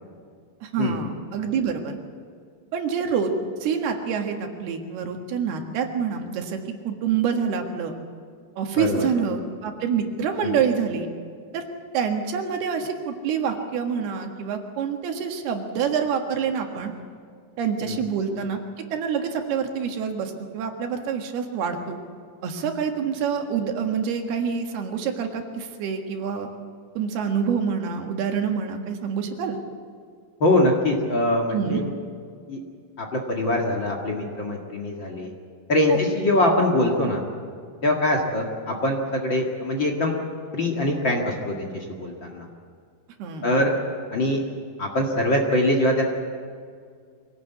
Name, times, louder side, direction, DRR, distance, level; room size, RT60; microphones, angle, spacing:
voice 1, 0.6-2.0 2.7-3.3 3.6-8.0 8.6-11.1 11.5-11.6 11.9-16.9 17.6-22.0 22.4-26.5 27.0-29.6 31.5-31.8 35.9-36.0 43.2-43.5, right 6 dB, 90° right, 4 dB, 3.7 m, -27 dB
voice 2, 8.8-9.1 10.4-10.6 17.8-18.0 30.4-31.9 32.5-32.6 33.0-35.3 35.7-37.2 37.8-40.1 40.5-42.5 43.4-43.7 44.1-44.4 44.8-46.0, left 1 dB, 40° left, 1 dB, 2.1 m, -23 dB
24.5 x 17.5 x 8.3 m, 2.1 s
omnidirectional pair, 4.4 m